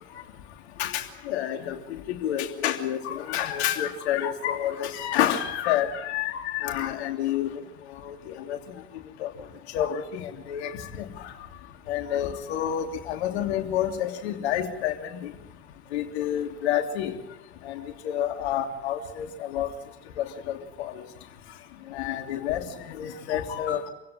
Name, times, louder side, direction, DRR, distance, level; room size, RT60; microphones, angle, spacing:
voice 1, 0.8-1.8 2.1-7.6 8.0-8.6 9.2-9.3 9.7-10.7 11.0-11.1 11.9-15.3 15.9-17.1 17.6-19.7 20.2-21.0 21.9-23.9, left 10 dB, 70° left, 4 dB, 3.1 m, -29 dB
27.5 x 16.5 x 9.3 m, 0.90 s
hypercardioid pair, 65°, 34 cm